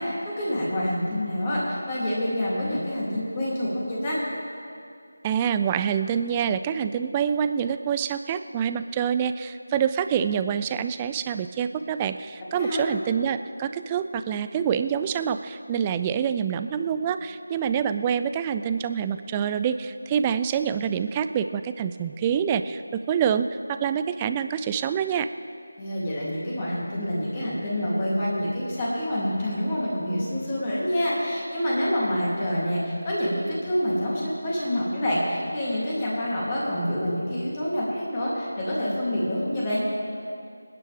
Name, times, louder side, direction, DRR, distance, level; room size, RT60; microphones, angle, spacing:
voice 1, 0.0-4.2 12.5-12.8 25.8-39.8, equal, 25° left, -6 dB, 3.1 m, -27 dB
voice 2, 5.2-22.8 23.1-25.3, right 8 dB, 15° right, 10 dB, 0.3 m, -26 dB
26.5 x 9.6 x 3.6 m, 2.4 s
figure-of-eight pair, 165°, 0 cm